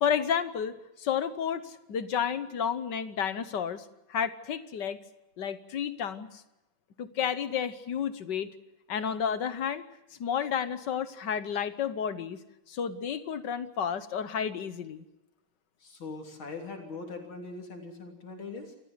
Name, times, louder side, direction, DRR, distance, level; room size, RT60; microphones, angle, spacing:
voice 1, 0.0-5.0 5.4-6.4 7.0-8.5 8.9-9.8 10.2-12.4 12.7-15.0, left 8 dB, 65° left, 13 dB, 1.7 m, -31 dB
voice 2, 15.8-18.8, left 3 dB, 85° left, 3 dB, 4.1 m, -41 dB
27.5 x 14.5 x 9.5 m, 0.93 s
omnidirectional pair, 2.2 m